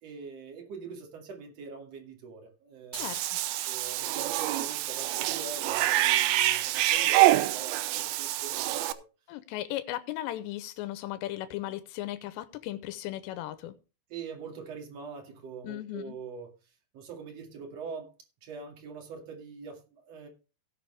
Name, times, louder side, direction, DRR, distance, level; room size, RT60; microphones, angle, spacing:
voice 1, 0.0-3.0 3.6-9.0 14.1-16.5 16.9-18.1 18.4-20.3, right 5 dB, 45° right, 2.9 m, -43 dB
voice 2, 2.9-3.4 9.3-13.8 15.6-16.2, left 14 dB, 90° left, 2.9 m, -36 dB
Cat / Bathtub (filling or washing), 2.9-8.9, right 15 dB, 85° right, 2.2 m, -26 dB
17.5 x 6.7 x 3.4 m
omnidirectional pair, 5.0 m